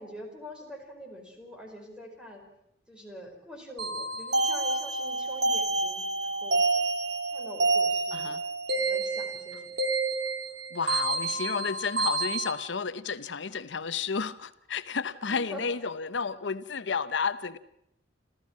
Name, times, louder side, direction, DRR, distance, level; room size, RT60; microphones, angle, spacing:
voice 1, 0.0-2.4 2.9-6.6 7.3-8.4 8.7-9.7 11.3-11.6 15.1-15.6, equal, 5° right, 2 dB, 4.9 m, -45 dB
sound 1, 3.8-12.5, right 2 dB, 65° right, 2.9 m, -28 dB
voice 2, 8.1-8.4 10.7-17.6, left 5 dB, 80° left, 14 dB, 0.8 m, -32 dB
27.5 x 14.5 x 7.3 m, 0.79 s
head